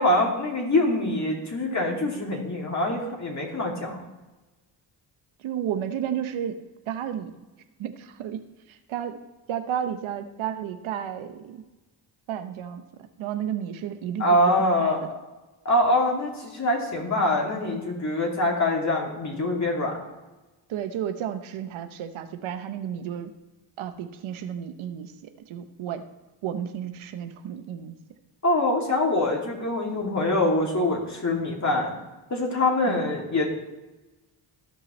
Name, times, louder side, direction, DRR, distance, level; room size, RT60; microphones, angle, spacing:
voice 1, 0.0-4.0 14.2-15.0 15.6-20.0 28.4-31.9 32.3-33.5, left 1 dB, 35° left, -1 dB, 2.5 m, -24 dB
voice 2, 5.4-6.6 6.9-7.3 7.8-8.4 8.9-9.2 9.5-11.6 12.3-12.8 13.2-15.1 20.7-23.3 23.8-25.1 25.5-26.0 26.4-28.0 32.9-33.1, right 9 dB, 80° right, 8 dB, 0.9 m, -32 dB
14.0 x 5.5 x 3.1 m, 1.1 s
cardioid pair, 80°, 48 cm